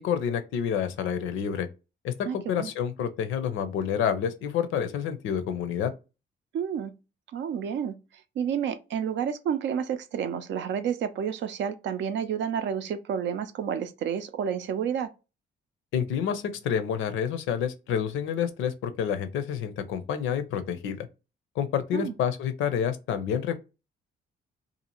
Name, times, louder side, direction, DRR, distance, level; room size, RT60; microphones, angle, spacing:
voice 1, 0.0-1.7 2.0-5.9 15.9-21.1 21.6-23.6, left 8 dB, 85° left, 0.5 m, -28 dB
voice 2, 2.2-2.7 6.5-6.9 7.3-8.0 8.4-15.1 21.9-22.1, right 8 dB, 65° right, 0.5 m, -30 dB
2.7 x 2.5 x 2.9 m
cardioid pair, 90°, 20 cm